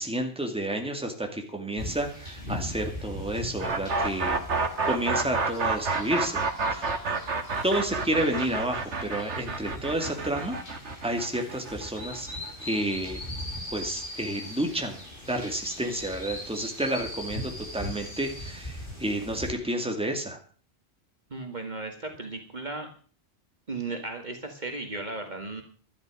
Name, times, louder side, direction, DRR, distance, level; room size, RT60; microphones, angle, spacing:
voice 1, 0.0-4.4 4.8-6.4 6.7-6.9 7.6-10.6 11.0-12.3 12.6-13.2 13.7-15.0 15.3-20.4, right 1 dB, 5° right, 3 dB, 2.4 m, -30 dB
sound 1, 1.8-19.5, left 1 dB, 50° left, 4.7 m, -40 dB
sound 2, 3.6-13.4, right 4 dB, 75° right, 1.9 m, -29 dB
voice 2, 21.3-22.9 23.7-25.6, right 3 dB, 40° right, 4 dB, 2.1 m, -35 dB
12.5 x 11.5 x 6.4 m, 0.41 s
omnidirectional pair, 1.2 m